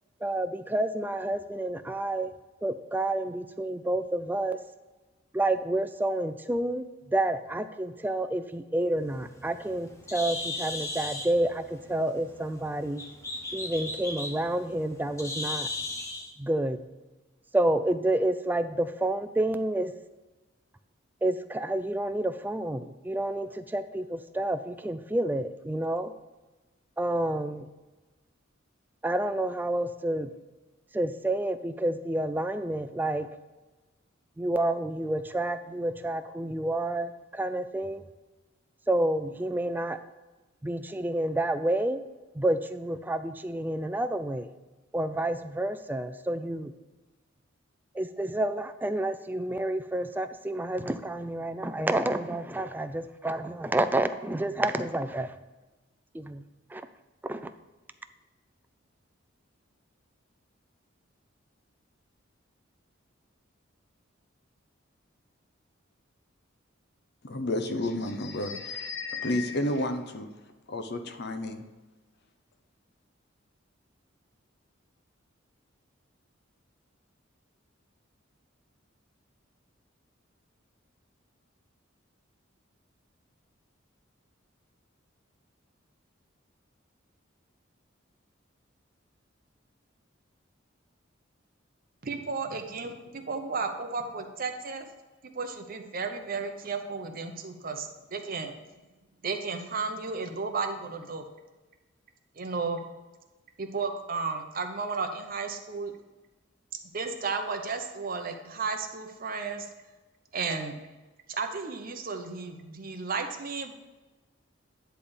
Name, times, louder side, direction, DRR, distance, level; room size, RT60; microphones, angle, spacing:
voice 1, 0.2-2.3 2.6-4.6 5.3-13.0 13.5-15.7 16.4-16.8 17.5-19.9 21.2-26.1 27.0-27.7 29.0-30.3 30.9-33.3 34.4-38.1 38.9-40.0 40.6-42.0 42.3-44.5 44.9-46.7 47.9-55.3 56.1-56.4 56.7-56.8 57.2-57.5, right 1 dB, 10° right, 9 dB, 0.3 m, -29 dB
Bird, 9.0-16.3, left 2 dB, 15° left, 0.7 m, -37 dB
voice 2, 67.2-70.3 70.7-71.6, left 1 dB, 55° left, 7 dB, 0.7 m, -31 dB
voice 3, 92.0-94.9 95.3-98.5 99.2-101.2 102.4-102.8 103.6-105.9 106.9-109.6 110.3-110.7 111.3-113.7, right 4 dB, 45° right, 5 dB, 0.8 m, -33 dB
10.0 x 3.4 x 7.0 m, 1.2 s
head